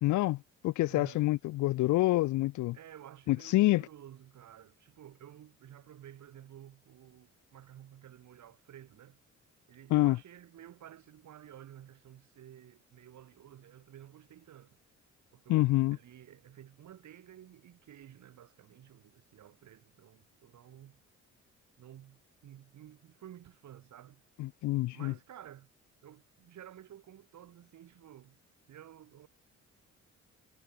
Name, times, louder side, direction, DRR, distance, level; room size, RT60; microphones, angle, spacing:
voice 1, 0.0-2.8 3.3-3.8 9.9-10.2 15.5-16.0 24.4-25.1, left 18 dB, 75° left, 0.5 m, -27 dB
voice 2, 0.9-1.3 2.7-9.2 9.7-14.8 15.3-21.0 21.8-24.2 24.9-25.7 26.0-28.4 28.7-29.3, right 11 dB, 70° right, 7.8 m, -53 dB
cardioid pair, 90°, 30 cm